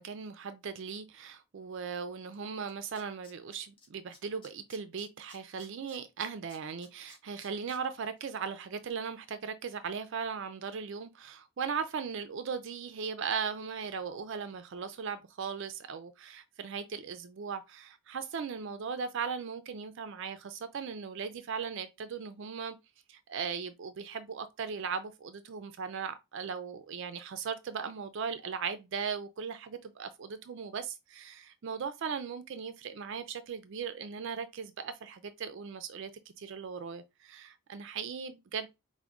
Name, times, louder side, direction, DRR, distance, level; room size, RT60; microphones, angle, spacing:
voice 1, 0.0-22.8 23.1-36.1 36.4-38.7, right 6 dB, 60° right, 0.4 m, -38 dB
Tools, 2.3-2.4 2.7-3.9 4.1-7.8 8.2-8.3, left 3 dB, 25° left, 0.8 m, -56 dB
4.9 x 2.1 x 3.4 m
head